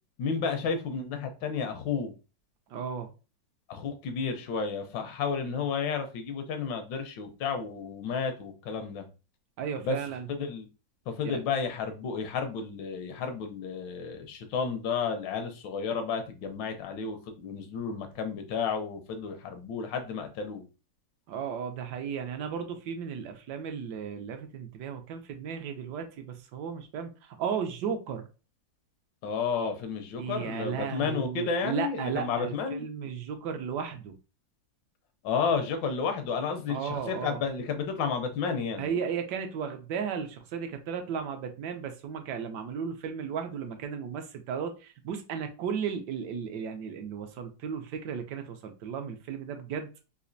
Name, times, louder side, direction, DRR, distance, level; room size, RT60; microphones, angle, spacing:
voice 1, 0.2-2.1 3.7-9.1 9.8-10.0 10.3-10.7 11.1-20.6 29.2-32.9 35.2-38.9, left 5 dB, 80° left, 1.4 m, -32 dB
voice 2, 2.7-3.1 9.6-10.3 11.2-11.3 21.3-28.3 30.2-34.2 36.7-37.4 38.8-49.9, right 7 dB, 75° right, 1.1 m, -35 dB
4.1 x 2.5 x 2.5 m
omnidirectional pair, 2.0 m